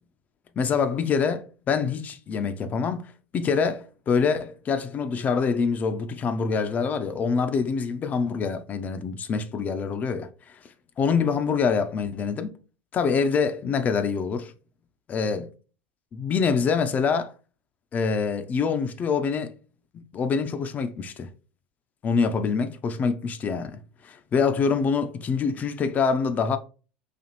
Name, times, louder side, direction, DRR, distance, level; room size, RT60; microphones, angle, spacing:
voice 1, 0.6-10.5 11.0-12.6 12.9-14.5 15.1-15.5 16.1-17.3 17.9-19.5 20.1-21.3 22.0-26.6, left 5 dB, 35° left, 0.5 m, -25 dB
4.2 x 2.6 x 3.0 m
hypercardioid pair, 80°, 5 cm